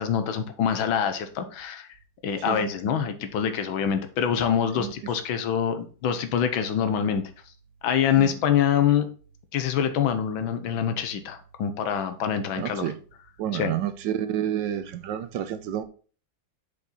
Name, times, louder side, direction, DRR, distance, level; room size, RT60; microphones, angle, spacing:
voice 1, 0.0-1.9 2.2-7.2 7.8-9.1 9.5-12.8 13.5-13.7, left 8 dB, 90° left, 1.7 m, -25 dB
voice 2, 4.7-5.1 8.2-8.3 12.6-13.0 13.4-15.8, right 10 dB, 75° right, 1.3 m, -29 dB
6.7 x 5.2 x 4.2 m
omnidirectional pair, 2.1 m